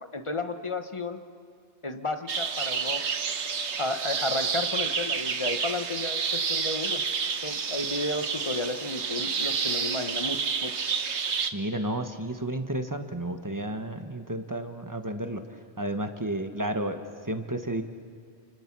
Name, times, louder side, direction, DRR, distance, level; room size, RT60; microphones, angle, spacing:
voice 1, 0.1-1.2 1.8-3.0 3.8-7.0 7.4-10.7, left 2 dB, 30° left, 7 dB, 1.2 m, -32 dB
sound 1, 2.3-11.5, right 5 dB, 85° right, 1.4 m, -29 dB
voice 2, 11.5-15.4 15.8-17.0 17.3-17.8, right 1 dB, 15° right, 6 dB, 1.3 m, -32 dB
29.0 x 25.5 x 6.2 m, 2.2 s
omnidirectional pair, 1.1 m